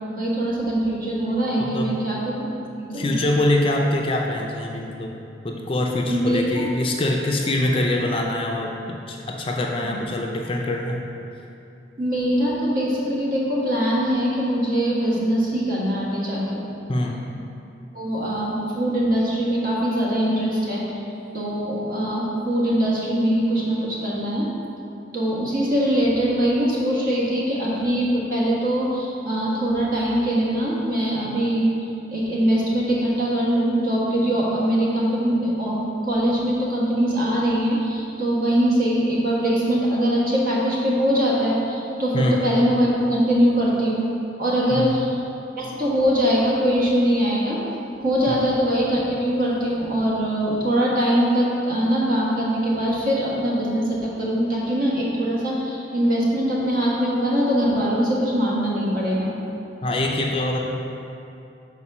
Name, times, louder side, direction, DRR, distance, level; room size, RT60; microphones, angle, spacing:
voice 1, 0.1-2.2 2.7-3.1 6.1-6.7 9.8-10.0 12.0-16.7 17.9-20.8 21.3-24.5 25.1-44.0 44.4-45.2 45.6-47.6 48.0-59.3, equal, 50° right, -6 dB, 1.3 m, -22 dB
voice 2, 1.6-2.0 2.9-5.1 5.4-11.0 16.9-17.2 42.1-42.4 44.7-45.0 48.3-48.5 59.8-60.6, left 1 dB, 30° left, 0 dB, 0.4 m, -24 dB
5.1 x 4.2 x 5.9 m, 2.8 s
head